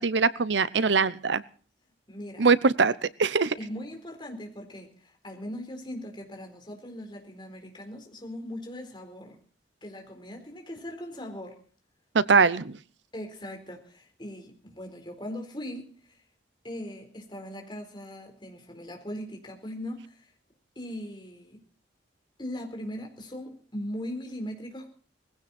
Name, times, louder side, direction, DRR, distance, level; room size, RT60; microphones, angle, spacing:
voice 1, 0.0-1.4 2.4-3.5 12.1-12.8, right 4 dB, 80° right, 18 dB, 0.8 m, -22 dB
voice 2, 2.1-2.5 3.6-9.4 9.8-11.6 13.1-16.2 16.6-20.3 20.8-21.6 22.4-24.9, equal, 25° left, 3 dB, 4.2 m, -39 dB
20.0 x 16.0 x 4.3 m, 0.43 s
head